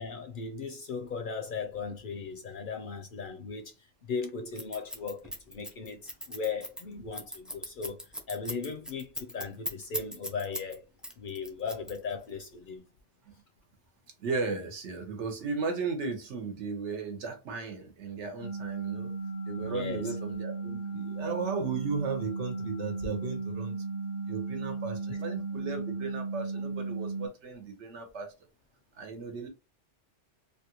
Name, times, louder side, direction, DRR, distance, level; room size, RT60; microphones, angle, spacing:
voice 1, 0.0-3.7 4.0-8.0 8.3-10.8 11.2-12.8 19.6-20.1 25.1-25.2, left 5 dB, 60° left, 0.6 m, -37 dB
Scissors, 4.5-10.7 11.0-12.3, left 1 dB, ahead, 0.3 m, -38 dB
voice 2, 14.2-19.1 19.5-23.8 24.3-28.3 29.0-29.5, right 4 dB, 80° right, 1.1 m, -35 dB
sound 1, 18.4-27.3, right 3 dB, 90° left, 1.0 m, -35 dB
3.3 x 2.3 x 2.8 m
omnidirectional pair, 1.2 m